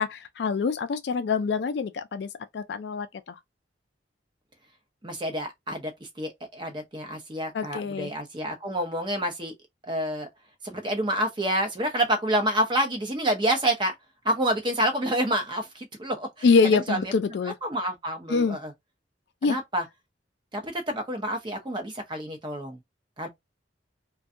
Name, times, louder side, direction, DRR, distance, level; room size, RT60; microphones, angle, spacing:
voice 1, 0.0-3.4 7.5-8.1 16.4-17.6 18.3-18.6 19.4-19.6, left 4 dB, 65° left, 0.4 m, -25 dB
voice 2, 5.0-5.9 6.2-9.5 9.8-10.3 10.6-13.9 14.2-16.5 16.7-17.1 17.6-18.7 19.5-19.8 20.5-22.8 23.2-23.3, right 1 dB, 25° right, 0.6 m, -28 dB
2.6 x 2.2 x 2.4 m
head